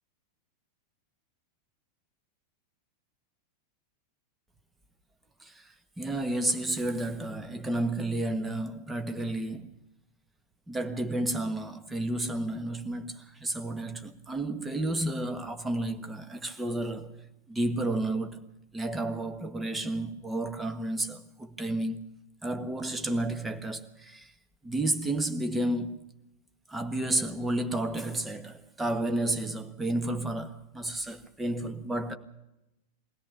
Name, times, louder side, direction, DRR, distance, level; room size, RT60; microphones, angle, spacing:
voice 1, 6.0-9.7 10.7-17.1 17.5-18.4 18.7-22.1 22.4-24.3 24.6-26.0 26.7-32.1, right 1 dB, 10° right, 1.5 m, -31 dB
22.0 x 17.0 x 6.9 m
figure-of-eight pair, 90°, 0 cm